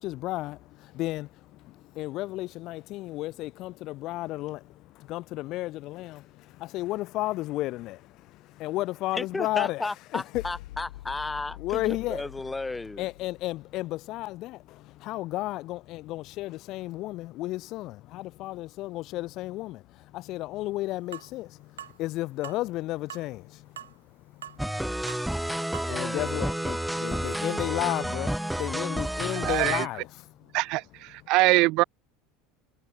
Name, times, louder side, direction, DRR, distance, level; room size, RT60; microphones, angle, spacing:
voice 1, 0.0-10.4 11.6-12.3 13.0-23.9 24.2-30.5, left 17 dB, 55° left, 0.8 m, -33 dB
voice 2, 9.1-13.1, left 2 dB, 15° left, 2.3 m, -33 dB
sound 1, 10.3-13.8, left 16 dB, 70° left, 6.3 m, -45 dB
sound 2, 21.1-21.3 21.8-22.0 22.4-22.6 23.1-23.3 23.8-23.9 24.4-24.6 25.1-25.3 25.7-25.9, right 10 dB, 80° right, 2.4 m, -41 dB
sound 3, 24.6-29.9, right 1 dB, 5° right, 0.7 m, -30 dB
voice 3, 29.4-29.9 30.5-31.8, right 22 dB, 55° right, 0.4 m, -23 dB
hypercardioid pair, 75°, 0 cm